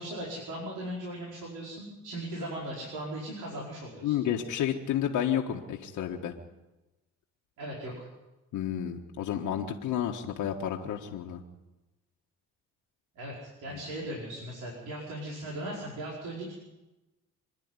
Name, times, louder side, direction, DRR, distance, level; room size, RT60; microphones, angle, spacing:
voice 1, 0.0-4.2 7.6-8.1 13.2-16.5, right 1 dB, 85° right, -4 dB, 5.2 m, -38 dB
voice 2, 4.0-6.3 8.5-11.4 13.7-13.8, left 10 dB, 80° left, 1 dB, 1.6 m, -31 dB
26.5 x 10.5 x 9.8 m, 1.0 s
cardioid pair, 90°, 30 cm